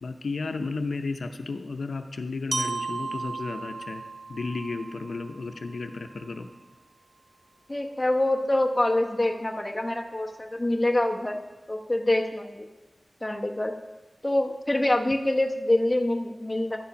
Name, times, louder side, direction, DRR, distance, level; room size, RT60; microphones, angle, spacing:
voice 1, 0.0-4.0 4.3-6.5, left 3 dB, 80° left, 6 dB, 0.6 m, -33 dB
Glockenspiel, 2.5-6.5, right 3 dB, 65° right, 0.5 m, -35 dB
voice 2, 7.7-11.4 11.7-12.7 13.2-13.7 14.2-16.8, left 1 dB, 20° left, 2 dB, 0.9 m, -25 dB
11.5 x 7.1 x 5.3 m, 1.1 s
wide cardioid pair, 95°, 0 cm